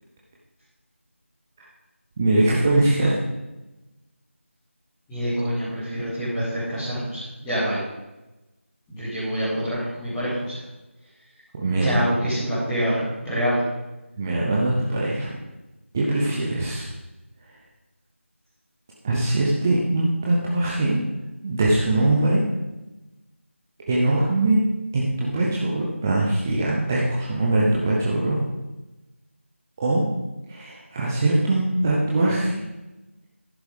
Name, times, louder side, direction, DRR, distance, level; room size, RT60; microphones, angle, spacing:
voice 1, 2.2-3.2 11.6-12.0 14.2-15.4 15.9-16.9 19.0-21.0 21.4-22.4 23.9-24.6 24.9-28.4 29.8-30.0 30.5-32.6, right 2 dB, 10° right, -5 dB, 0.7 m, -22 dB
voice 2, 5.1-7.8 8.9-10.6 11.8-13.6, equal, 5° left, -15 dB, 2.5 m, -26 dB
10.5 x 8.0 x 5.1 m, 1.0 s
figure-of-eight pair, 170°, 7 cm